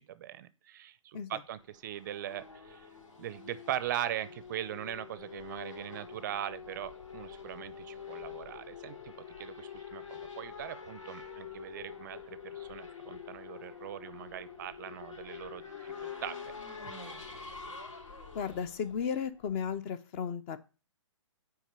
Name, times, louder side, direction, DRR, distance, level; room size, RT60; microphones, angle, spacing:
voice 1, 0.0-2.9 3.2-16.5 16.8-16.9, right 11 dB, 35° right, 17 dB, 0.5 m, -40 dB
Race car auto racing / Accelerating revving vroom, 1.6-19.7, left 6 dB, 80° left, 3.5 m, -46 dB
voice 2, 18.3-20.6, left 7 dB, 25° left, 14 dB, 0.5 m, -34 dB
6.3 x 4.8 x 6.6 m, 0.33 s
hypercardioid pair, 145°, 16 cm